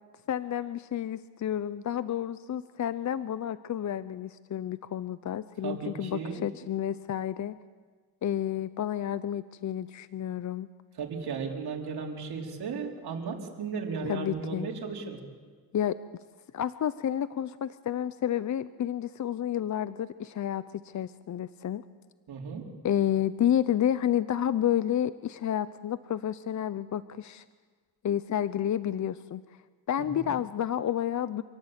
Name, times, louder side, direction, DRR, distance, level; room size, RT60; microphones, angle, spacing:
voice 1, 0.3-7.6 8.2-10.7 14.0-14.7 15.7-16.0 16.5-21.8 22.8-27.4 28.0-29.6 29.9-31.4, left 10 dB, 45° left, 15 dB, 0.6 m, -30 dB
voice 2, 5.6-6.5 11.0-15.2 22.3-22.6 30.0-30.3, right 5 dB, 70° right, 0 dB, 4.2 m, -35 dB
27.5 x 18.0 x 8.2 m, 1.5 s
cardioid pair, 100°, 40 cm